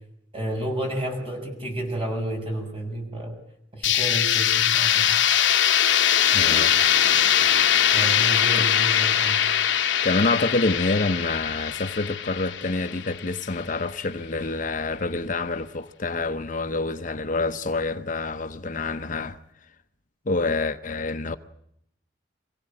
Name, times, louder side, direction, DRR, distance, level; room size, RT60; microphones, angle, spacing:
voice 1, 0.3-3.4 3.7-5.2 7.9-9.4, right 1 dB, 30° right, 6.7 m, -30 dB
sound 1, 3.8-13.6, left 10 dB, 75° left, 0.9 m, -21 dB
voice 2, 6.3-6.8 8.6-8.7 10.0-19.4 20.3-21.4, left 3 dB, 45° left, 0.9 m, -27 dB
26.0 x 16.5 x 8.6 m
head